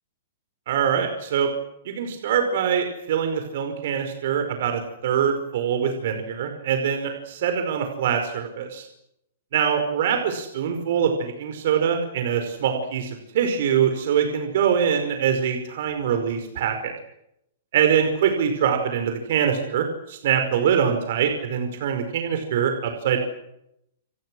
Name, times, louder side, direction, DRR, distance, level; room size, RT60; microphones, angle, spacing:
voice 1, 0.7-1.5 1.9-8.9 9.5-16.9 17.7-23.2, right 8 dB, 55° right, 6 dB, 5.3 m, -23 dB
29.0 x 28.0 x 6.4 m, 0.79 s
hypercardioid pair, 170°, 0 cm